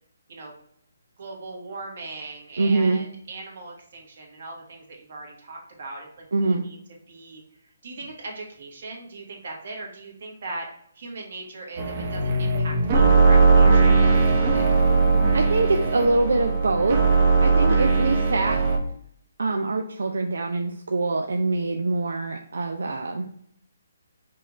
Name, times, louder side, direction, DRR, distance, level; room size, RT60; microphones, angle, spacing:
voice 1, 1.2-6.8 7.1-7.4 7.8-10.7 10.9-14.7 17.4-17.8, right 2 dB, 55° right, -1 dB, 1.5 m, -39 dB
voice 2, 2.6-3.0 6.3-6.6 15.3-17.0 17.4-18.6 19.4-23.3, right 3 dB, 85° right, 3 dB, 0.4 m, -24 dB
sound 1, 11.8-18.8, right 4 dB, 35° right, 0.8 m, -19 dB
5.5 x 2.6 x 3.1 m, 0.68 s
hypercardioid pair, 160°, 0 cm